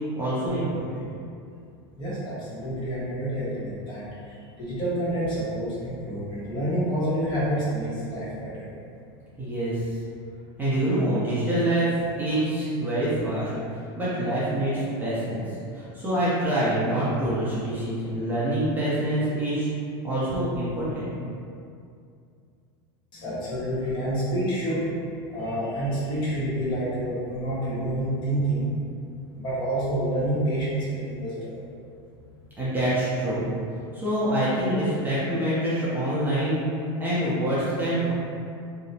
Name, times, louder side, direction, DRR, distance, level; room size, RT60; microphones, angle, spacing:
voice 1, 0.2-0.8 9.4-10.0 10.6-15.5 15.7-19.7 20.0-21.1 32.6-33.5 33.9-38.1, right 1 dB, 15° right, -11 dB, 0.6 m, -26 dB
voice 2, 2.0-8.7 23.1-24.8 25.3-28.7 29.3-31.5, right 1 dB, 35° left, -9 dB, 1.0 m, -28 dB
2.8 x 2.0 x 2.7 m, 2.5 s
supercardioid pair, 130°, 14 cm